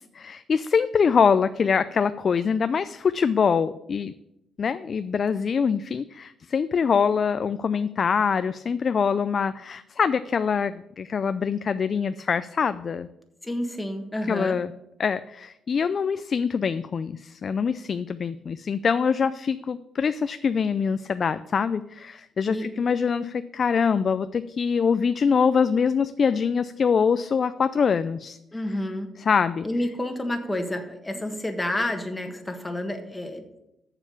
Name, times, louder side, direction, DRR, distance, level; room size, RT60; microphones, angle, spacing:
voice 1, 0.1-4.1 4.6-13.1 14.3-14.7 15.0-28.4 29.2-29.6, left 6 dB, 45° left, 12 dB, 0.3 m, -24 dB
voice 2, 13.4-14.6 22.5-22.7 28.5-29.1 29.6-33.4, left 1 dB, 15° left, 5 dB, 1.5 m, -29 dB
7.1 x 6.9 x 7.0 m, 0.86 s
cardioid pair, 90°, 0 cm